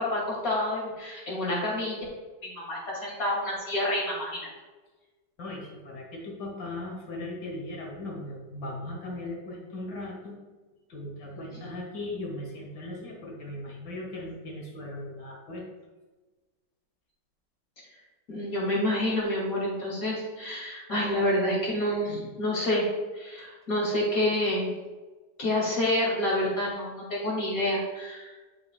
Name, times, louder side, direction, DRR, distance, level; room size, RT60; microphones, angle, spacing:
voice 1, 0.0-2.0 2.4-4.4 18.3-22.8 23.2-24.7 25.4-28.3, left 1 dB, 50° left, -5 dB, 2.8 m, -28 dB
voice 2, 5.4-10.4 10.9-15.7, left 1 dB, 70° left, -1 dB, 2.0 m, -38 dB
11.0 x 5.5 x 2.3 m, 1.2 s
omnidirectional pair, 1.9 m